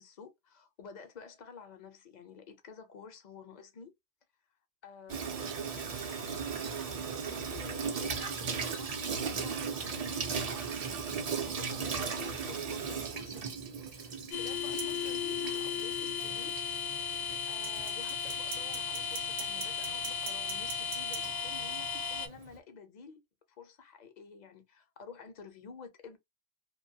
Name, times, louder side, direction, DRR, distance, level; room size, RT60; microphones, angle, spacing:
voice 1, 0.0-3.9 4.8-10.2 11.3-16.5 17.5-23.2 23.6-26.2, left 5 dB, 55° left, 0.6 m, -51 dB
Water tap faucet / Sink (filling or washing), 5.1-22.6, right 6 dB, 50° right, 0.5 m, -38 dB
sound 1, 12.1-12.2 14.8-14.9 17.6-21.3, right 8 dB, 75° right, 0.8 m, -43 dB
sound 2, 14.3-22.3, left 7 dB, 75° left, 0.8 m, -35 dB
2.5 x 2.2 x 2.6 m
omnidirectional pair, 1.1 m